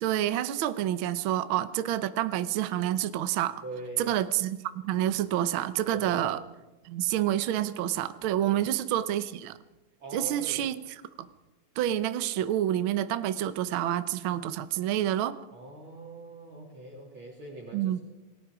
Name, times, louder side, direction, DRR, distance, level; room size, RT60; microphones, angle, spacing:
voice 1, 0.0-3.6 4.0-6.4 6.8-9.6 10.1-10.7 11.2-11.3 11.8-15.4 17.7-18.0, right 12 dB, 90° right, 12 dB, 1.1 m, -28 dB
voice 2, 3.6-4.2 5.9-6.3 8.4-8.6 10.0-10.7 15.5-18.0, right 2 dB, 40° right, -1 dB, 3.9 m, -43 dB
27.5 x 20.0 x 4.9 m, 1.1 s
omnidirectional pair, 3.5 m